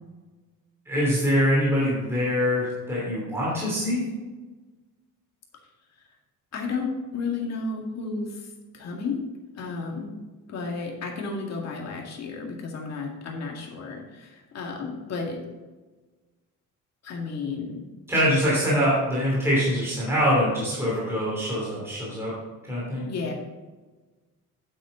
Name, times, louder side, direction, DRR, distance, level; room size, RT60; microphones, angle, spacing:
voice 1, 0.8-4.1 18.1-22.3 22.6-23.1, equal, 10° right, -7 dB, 3.0 m, -24 dB
voice 2, 6.5-9.2 9.5-10.2 10.5-15.5 17.0-17.9 23.1-23.3, left 4 dB, 55° left, 0 dB, 2.1 m, -32 dB
9.5 x 8.6 x 3.8 m, 1.2 s
cardioid pair, 170°, 32 cm